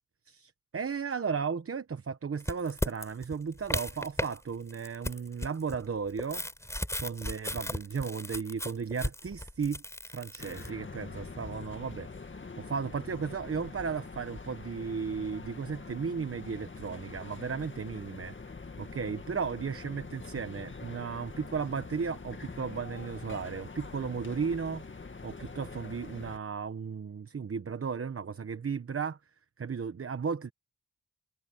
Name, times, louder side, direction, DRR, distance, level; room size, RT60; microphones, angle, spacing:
voice 1, 0.3-6.4 7.0-9.8 10.1-12.3 12.6-18.4 18.8-24.8 25.2-29.2 29.6-30.5, right 6 dB, 45° right, 1.0 m, -35 dB
sound 1, 2.4-4.4 4.7-10.7, left 1 dB, 10° left, 3.8 m, -35 dB
sound 2, 10.4-26.4, left 4 dB, 40° left, 2.1 m, -44 dB
wide cardioid pair, 85°, 31 cm